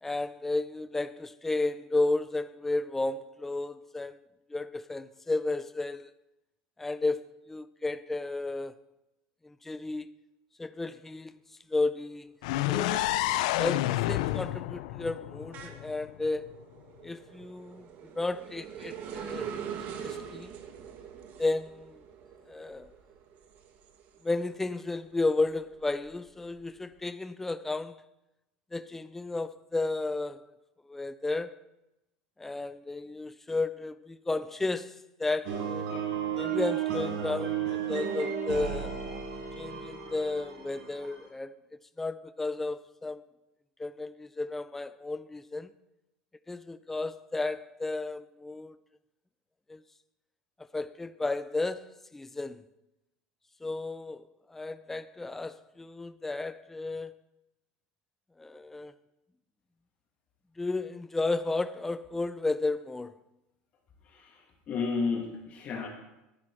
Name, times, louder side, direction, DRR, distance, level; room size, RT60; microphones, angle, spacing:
voice 1, 0.0-4.2 4.5-6.1 6.8-8.7 9.4-10.1 10.6-11.4 11.7-12.4 12.7-13.1 13.6-16.5 17.0-19.5 20.0-20.5 21.4-22.0 22.5-22.9 24.2-28.0 28.7-30.5 30.9-31.6 32.4-35.9 36.4-38.9 39.6-41.6 42.0-43.2 43.8-45.7 46.5-48.8 49.7-49.8 50.7-52.6 53.6-57.1 58.4-58.9 60.6-63.2, left 2 dB, 10° left, 0.4 m, -33 dB
sound 1, 12.4-16.3, left 16 dB, 80° left, 0.4 m, -30 dB
sound 2, 12.6-13.0 13.4-24.7 25.1-26.8, right 8 dB, 50° right, 1.3 m, -44 dB
sound 3, 35.4-41.3, right 8 dB, 75° right, 4.5 m, -33 dB
voice 2, 64.7-65.9, left 4 dB, 35° left, 1.7 m, -32 dB
11.5 x 10.0 x 4.4 m
supercardioid pair, 135°, 4 cm